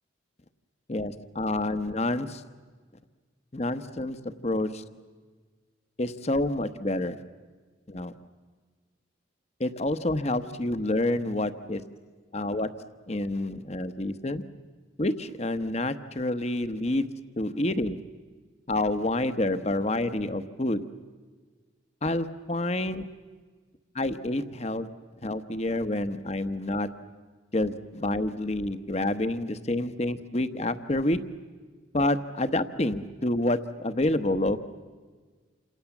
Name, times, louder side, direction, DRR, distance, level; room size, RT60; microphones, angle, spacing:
voice 1, 0.9-2.4 3.5-4.8 6.0-7.2 7.9-8.1 9.6-11.8 12.3-12.7 13.1-14.4 15.0-17.1 17.4-18.0 18.7-20.8 22.0-23.1 23.9-24.9 25.2-26.9 27.5-31.2 31.9-34.6, left 1 dB, 35° left, 11 dB, 1.0 m, -28 dB
29.0 x 27.0 x 7.3 m, 1.5 s
head